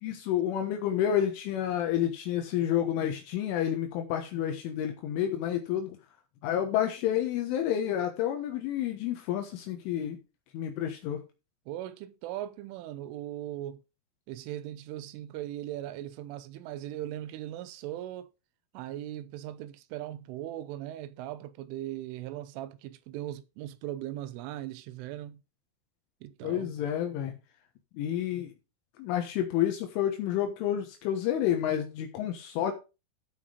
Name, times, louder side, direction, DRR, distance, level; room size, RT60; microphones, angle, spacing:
voice 1, 0.0-6.0 6.4-10.2 10.5-11.2 26.4-27.3 28.0-28.5 29.0-32.7, left 10 dB, 75° left, 3.6 m, -29 dB
voice 2, 11.7-13.8 14.3-18.3 18.7-25.4 26.2-26.7, right 13 dB, 80° right, 3.2 m, -39 dB
13.5 x 5.8 x 4.9 m
omnidirectional pair, 5.7 m